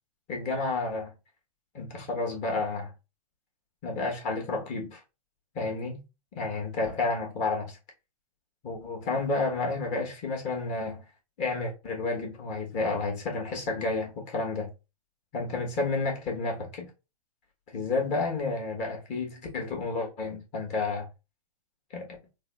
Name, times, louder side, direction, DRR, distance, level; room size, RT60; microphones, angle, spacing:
voice 1, 0.3-1.1 1.7-2.9 3.8-5.0 5.5-6.0 6.3-7.8 8.6-11.0 11.4-14.7 15.3-16.9 17.7-21.1 21.9-22.2, left 3 dB, 35° left, 1.3 m, -31 dB
4.0 x 2.0 x 3.4 m
hypercardioid pair, 120°, 20 cm